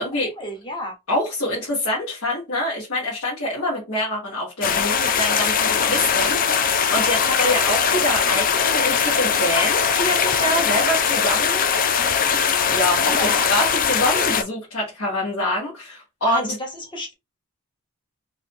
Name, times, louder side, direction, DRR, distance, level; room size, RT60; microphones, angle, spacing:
voice 1, 0.0-0.9 13.1-13.5 14.1-14.2 16.2-17.1, left 1 dB, 20° left, 1.1 m, -31 dB
voice 2, 1.1-11.7 12.7-16.5, left 1 dB, 65° left, 1.4 m, -25 dB
sound 1, 4.6-14.4, left 6 dB, 40° left, 0.5 m, -20 dB
4.1 x 2.7 x 2.9 m
head